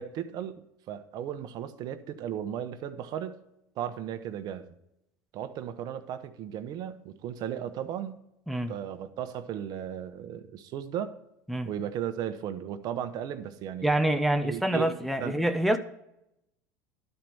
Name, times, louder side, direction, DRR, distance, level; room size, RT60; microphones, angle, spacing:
voice 1, 0.0-3.4 3.8-4.7 5.3-8.2 8.7-11.1 11.6-13.9 14.4-15.4, right 9 dB, 50° right, 10 dB, 0.9 m, -36 dB
voice 2, 13.8-15.8, right 1 dB, ahead, 6 dB, 0.6 m, -26 dB
12.0 x 4.5 x 5.4 m, 0.83 s
supercardioid pair, 110°, 9 cm